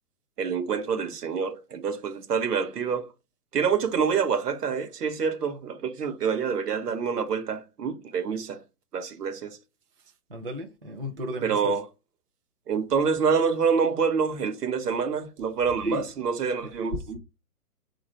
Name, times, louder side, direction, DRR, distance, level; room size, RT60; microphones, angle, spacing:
voice 1, 0.4-3.1 3.5-8.6 8.9-9.6 11.4-11.8 12.7-17.2, right 6 dB, 85° right, 1.0 m, -27 dB
voice 2, 10.3-11.8 15.8-16.1 16.7-17.0, left 1 dB, 40° right, 0.4 m, -33 dB
4.1 x 2.5 x 4.2 m
hypercardioid pair, 180°, 46 cm